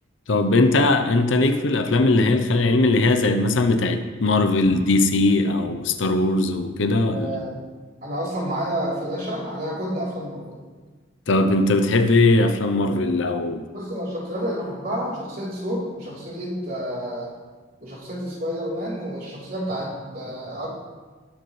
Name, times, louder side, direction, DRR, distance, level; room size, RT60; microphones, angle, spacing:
voice 1, 0.3-7.3 11.3-13.6, left 2 dB, 70° left, 7 dB, 0.7 m, -19 dB
voice 2, 7.1-7.5 8.0-10.6 13.7-17.3 17.8-20.7, equal, 50° right, -6 dB, 3.7 m, -29 dB
18.5 x 6.9 x 3.3 m, 1.4 s
head